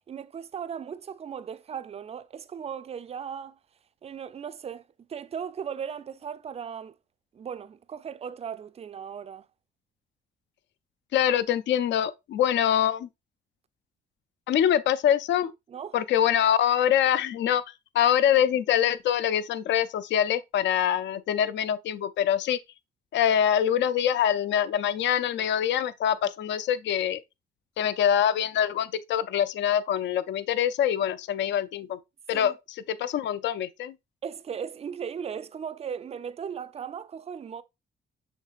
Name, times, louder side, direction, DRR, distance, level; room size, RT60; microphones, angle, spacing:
voice 1, 0.1-3.5 4.0-4.8 5.1-7.0 7.3-9.5 15.7-16.0 32.3-32.5 34.2-37.6, right 7 dB, 30° right, 0.4 m, -37 dB
voice 2, 11.1-13.1 14.5-15.5 15.9-17.6 17.9-22.6 23.1-27.2 27.8-32.0 32.3-33.9, left 10 dB, 65° left, 0.4 m, -24 dB
6.5 x 3.2 x 2.3 m
cardioid pair, 90°, 20 cm